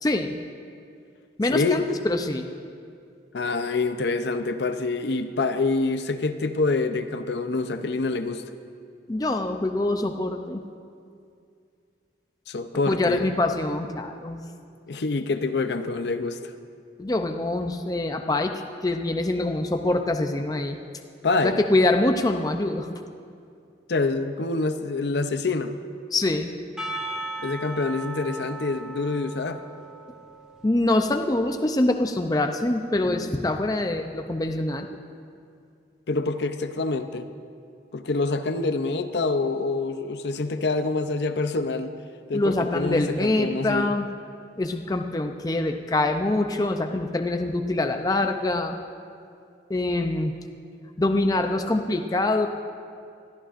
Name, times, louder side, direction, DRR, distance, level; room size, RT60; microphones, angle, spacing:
voice 1, 0.0-0.3 1.4-2.5 9.1-10.6 12.9-14.4 17.0-20.8 21.4-23.0 26.1-26.5 30.6-34.9 42.3-44.1 44.6-48.7 49.7-50.3 51.0-52.5, left 2 dB, 20° left, 5 dB, 0.5 m, -24 dB
voice 2, 1.5-1.9 3.3-8.4 12.5-13.3 14.9-16.4 21.2-21.6 23.9-25.8 27.4-29.6 36.1-37.3 37.9-41.9 42.3-43.9, left 3 dB, 65° left, 9 dB, 0.6 m, -26 dB
Percussion / Church bell, 26.8-31.3, right 2 dB, 5° right, 1.9 m, -37 dB
22.0 x 14.0 x 2.5 m, 2.4 s
head